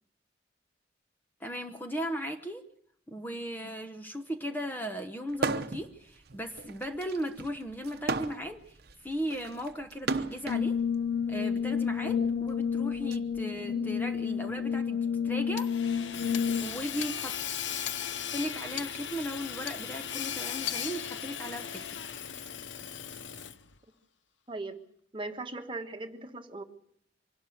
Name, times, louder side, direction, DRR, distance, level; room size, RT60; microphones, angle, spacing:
voice 1, 1.4-2.6 3.1-10.7 11.3-15.7 16.5-17.4 18.3-22.0, equal, 10° left, 6 dB, 1.0 m, -37 dB
sound 1, 5.3-5.9 6.3-10.6 11.5-13.2, right 3 dB, 60° right, 1.0 m, -34 dB
Brass instrument, 10.5-16.9, left 6 dB, 55° left, 1.5 m, -30 dB
Hammer / Sawing, 15.6-23.7, left 9 dB, 80° left, 0.8 m, -37 dB
voice 2, 24.5-24.8 25.1-26.6, right 2 dB, 30° right, 5 dB, 1.6 m, -38 dB
24.5 x 12.0 x 9.3 m, 0.69 s
head